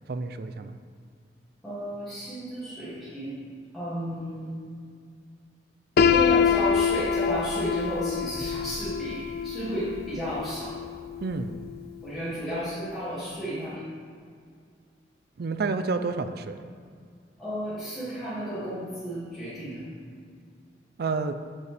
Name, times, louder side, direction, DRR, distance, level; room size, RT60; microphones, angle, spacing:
voice 1, 0.1-0.7 11.2-11.6 15.4-16.6 21.0-21.4, right 4 dB, 55° right, 9 dB, 0.4 m, -29 dB
voice 2, 1.6-3.4 3.7-4.5 6.0-10.9 12.0-13.8 17.4-19.8, equal, ahead, -14 dB, 2.2 m, -33 dB
Piano, 6.0-11.8, left 7 dB, 55° left, 0.4 m, -26 dB
9.3 x 7.2 x 3.4 m, 2.2 s
head